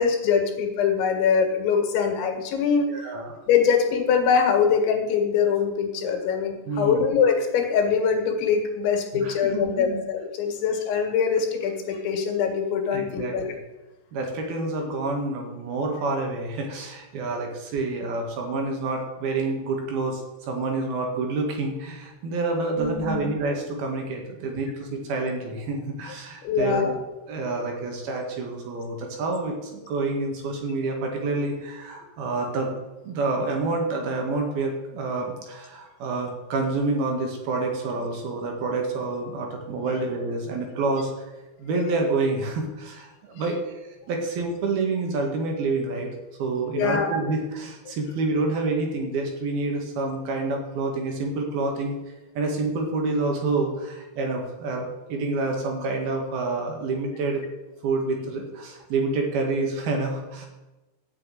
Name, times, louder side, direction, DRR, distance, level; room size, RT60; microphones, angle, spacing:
voice 1, 0.0-2.9 3.5-13.5 22.8-23.3 26.4-27.0 46.8-47.1, left 6 dB, 90° left, 3 dB, 4.2 m, -23 dB
voice 2, 2.9-3.4 6.7-7.1 9.1-10.0 12.9-13.6 14.1-20.2 20.5-26.9 27.3-32.7 33.0-41.3 41.6-46.1 46.4-52.0 52.4-57.4 57.8-60.5, right 3 dB, 65° right, 2 dB, 3.6 m, -28 dB
13.5 x 6.4 x 9.2 m, 1.1 s
omnidirectional pair, 5.1 m